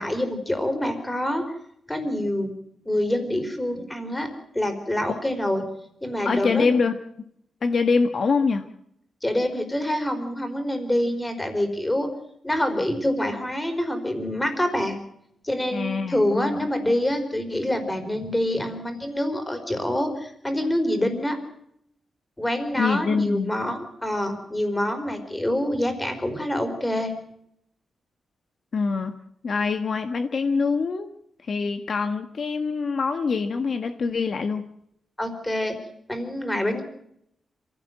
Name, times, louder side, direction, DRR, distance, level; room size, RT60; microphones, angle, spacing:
voice 1, 0.0-1.4 1.9-2.5 2.9-4.3 4.5-5.6 6.0-6.7 9.2-12.1 12.4-15.0 15.4-21.4 22.4-27.1 35.2-35.8 36.1-36.8, left 1 dB, 10° left, 7 dB, 4.3 m, -26 dB
voice 2, 6.2-7.0 7.6-8.6 15.7-16.6 22.8-23.6 28.7-29.1 29.4-31.1 31.4-34.7, left 4 dB, 50° left, 7 dB, 1.5 m, -24 dB
27.5 x 16.5 x 7.8 m, 0.73 s
wide cardioid pair, 150°, 0 cm